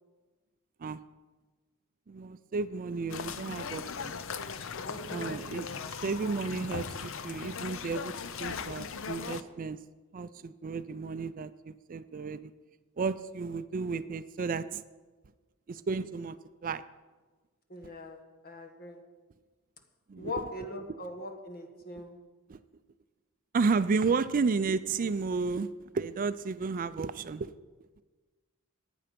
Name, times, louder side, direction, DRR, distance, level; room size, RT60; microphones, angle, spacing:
voice 1, 2.1-4.1 5.1-8.1 8.4-9.8 10.1-12.5 13.0-14.8 15.7-16.4 16.6-16.8 20.1-20.3 22.5-22.6 23.5-25.7 25.9-27.5, right 4 dB, 40° right, 13 dB, 0.4 m, -32 dB
sound 1, 3.1-9.4, left 5 dB, 65° left, 0.6 m, -38 dB
voice 2, 4.8-5.4 17.7-19.0 20.2-22.2, left 2 dB, 45° left, 5 dB, 1.5 m, -41 dB
14.5 x 9.5 x 5.2 m, 1.3 s
head